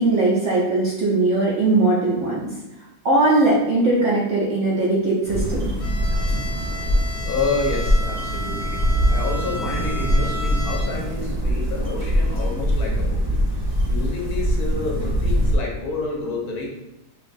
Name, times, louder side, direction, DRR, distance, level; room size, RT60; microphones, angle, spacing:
voice 1, 0.0-2.5 3.0-5.7, right 2 dB, 60° right, -5 dB, 0.8 m, -19 dB
sound 1, 5.3-15.5, equal, 30° right, 0.4 m, -23 dB
Bowed string instrument, 5.8-11.2, left 1 dB, 85° left, 1.4 m, -33 dB
voice 2, 7.2-13.2 13.9-16.6, left 3 dB, 65° left, -1 dB, 1.1 m, -29 dB
5.7 x 2.4 x 2.6 m, 0.95 s
omnidirectional pair, 1.9 m